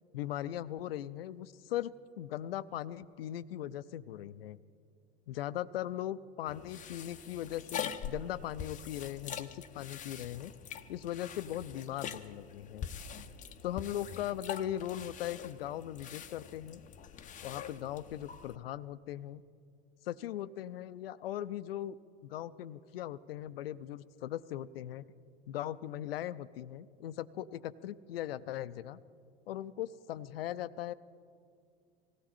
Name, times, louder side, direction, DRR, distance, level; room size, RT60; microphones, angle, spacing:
voice 1, 0.1-4.6 5.3-10.5 10.9-12.9 13.6-16.8 17.4-19.4 20.0-22.0 22.2-25.1 25.5-29.0 29.5-30.9, left 12 dB, 70° left, 16 dB, 0.5 m, -39 dB
sound 1, 6.5-18.5, left 8 dB, 25° left, 0.7 m, -44 dB
18.5 x 16.5 x 4.3 m, 2.3 s
figure-of-eight pair, 80°, 31 cm